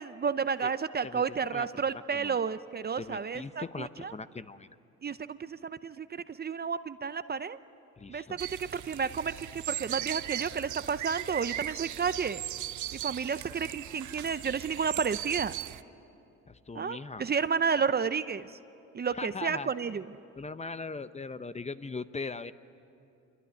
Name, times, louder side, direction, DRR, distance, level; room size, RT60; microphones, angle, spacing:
voice 1, 0.0-4.1 5.0-7.6 8.1-12.4 13.0-15.5 16.7-18.5 18.9-20.1, right 6 dB, 35° right, 13 dB, 0.7 m, -31 dB
voice 2, 1.0-1.7 1.9-2.4 3.0-4.7 8.0-8.4 16.5-17.2 19.1-19.7 20.4-22.5, left 4 dB, 20° left, 12 dB, 0.8 m, -40 dB
sound 1, 8.4-15.8, right 14 dB, 75° right, 0.7 m, -38 dB
26.5 x 23.5 x 9.5 m, 2.8 s
cardioid pair, 90°, 30 cm